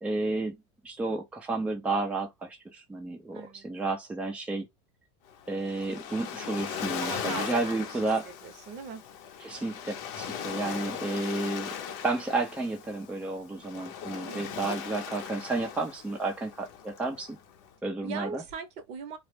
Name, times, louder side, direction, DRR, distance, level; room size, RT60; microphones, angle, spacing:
voice 1, 0.0-4.7 5.5-8.3 9.4-11.7 12.0-17.4 17.8-18.4, right 2 dB, 10° right, 0.5 m, -32 dB
voice 2, 3.3-3.7 7.0-9.0 14.3-14.6 18.0-19.2, right 5 dB, 50° right, 0.7 m, -40 dB
Waves surf, 5.3-17.7, left 8 dB, 55° left, 0.6 m, -39 dB
2.1 x 2.0 x 3.1 m
supercardioid pair, 130°, 15 cm